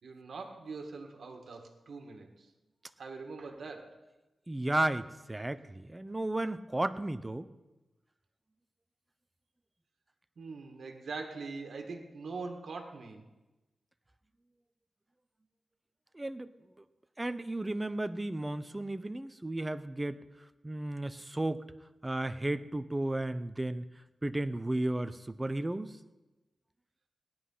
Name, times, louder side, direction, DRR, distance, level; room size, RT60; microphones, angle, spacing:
voice 1, 0.0-2.5 3.0-4.0 10.4-13.2, right 4 dB, 75° right, 3 dB, 1.8 m, -43 dB
voice 2, 4.5-7.5 16.1-16.5 17.2-20.2 20.6-21.6 22.0-23.8 24.2-25.9, right 1 dB, 20° right, 12 dB, 0.7 m, -33 dB
18.0 x 10.5 x 5.6 m, 1.1 s
wide cardioid pair, 90°, 0 cm